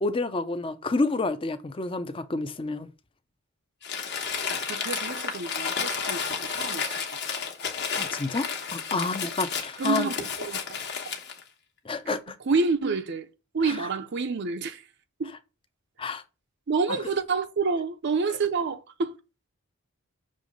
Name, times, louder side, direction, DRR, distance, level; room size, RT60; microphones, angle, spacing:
voice 1, 0.0-2.9 7.9-10.1 11.8-12.3 13.6-13.8 16.0-16.2 16.9-17.0, left 3 dB, 25° left, 0.5 m, -29 dB
Crumpling crinkling, 3.8-11.4, left 6 dB, 50° left, 1.1 m, -32 dB
voice 2, 4.7-7.4 8.9-9.1 9.8-10.8 12.5-13.3 13.5-14.8 15.2-15.4 16.7-19.2, right 4 dB, 50° right, 0.5 m, -28 dB
6.6 x 3.1 x 5.1 m
head